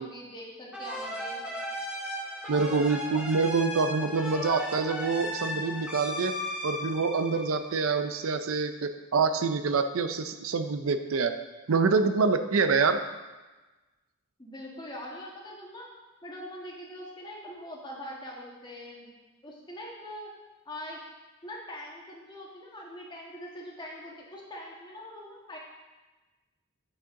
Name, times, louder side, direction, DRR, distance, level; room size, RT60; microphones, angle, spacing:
voice 1, 0.0-1.4 14.4-15.9 16.2-19.1 19.4-20.3 20.6-21.0 21.4-25.6, left 1 dB, 20° left, -3 dB, 1.5 m, -43 dB
sound 1, 0.7-8.2, left 1 dB, 5° right, 0.9 m, -36 dB
voice 2, 2.5-6.3 6.6-11.3 11.7-13.0, right 4 dB, 80° right, 9 dB, 0.5 m, -26 dB
8.5 x 6.7 x 3.7 m, 1.2 s
head